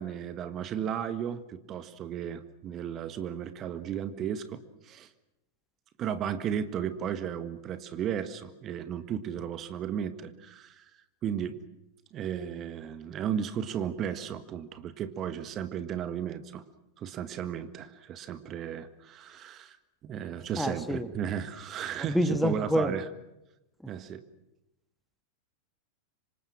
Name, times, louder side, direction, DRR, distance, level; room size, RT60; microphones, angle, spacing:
voice 1, 0.0-5.1 6.0-10.9 11.2-11.6 12.1-16.6 17.0-19.8 20.0-23.0 23.9-24.2, right 8 dB, 30° right, 12 dB, 1.6 m, -34 dB
voice 2, 20.6-21.1 22.1-22.9, equal, ahead, 11 dB, 1.6 m, -27 dB
26.5 x 26.0 x 6.2 m, 0.94 s
figure-of-eight pair, 90°, 0 cm